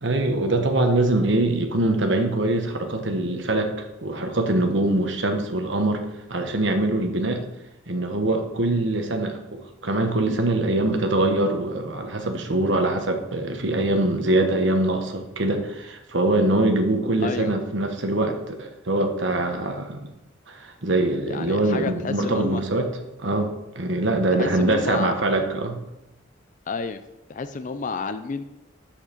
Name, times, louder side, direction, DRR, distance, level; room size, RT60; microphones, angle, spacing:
voice 1, 0.0-6.0 6.3-7.4 7.9-20.0 20.5-22.9 23.2-25.8, right 2 dB, 65° right, 4 dB, 1.2 m, -23 dB
voice 2, 17.2-17.5 21.3-22.6 24.3-25.1 26.7-27.0 27.3-28.4, left 4 dB, 40° left, 10 dB, 0.4 m, -30 dB
6.5 x 6.2 x 6.6 m, 0.93 s
head